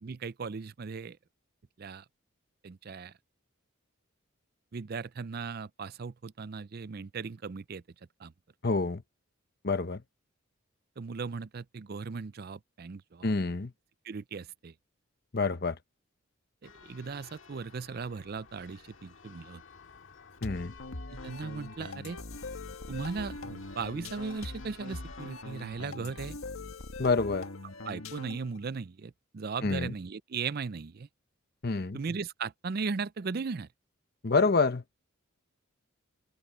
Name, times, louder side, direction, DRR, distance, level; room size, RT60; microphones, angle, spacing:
voice 1, 0.0-1.2 1.8-2.0 2.6-3.1 4.7-7.8 8.2-8.3 11.0-13.3 14.0-14.7 16.6-19.6 21.1-22.2 22.9-26.4 27.8-31.1 31.9-33.7, right 5 dB, 45° right, 0.5 m, -37 dB
voice 2, 8.6-9.0 9.6-10.0 13.2-13.7 15.3-15.8 20.4-20.7 27.0-27.5 29.6-29.9 31.6-32.0 34.2-34.8, left 3 dB, 50° left, 0.8 m, -27 dB
Church bell, 16.6-25.8, left 4 dB, 65° left, 2.0 m, -53 dB
sound 1, 20.4-28.6, left 2 dB, 85° left, 1.6 m, -42 dB
open air
head